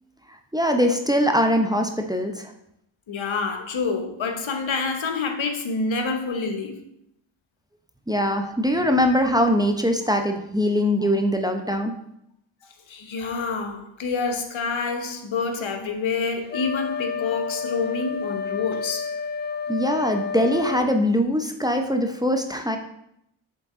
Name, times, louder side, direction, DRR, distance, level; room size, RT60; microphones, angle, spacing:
voice 1, 0.5-2.5 8.1-11.9 19.7-22.8, equal, 10° right, 0.8 m, -22 dB
voice 2, 3.1-6.9 12.9-19.1, left 4 dB, 70° left, 1.0 m, -27 dB
Wind instrument woodwind instrument, 16.5-20.9, left 6 dB, 20° left, 0.5 m, -30 dB
7.9 x 3.7 x 3.8 m
cardioid pair, 40°, 48 cm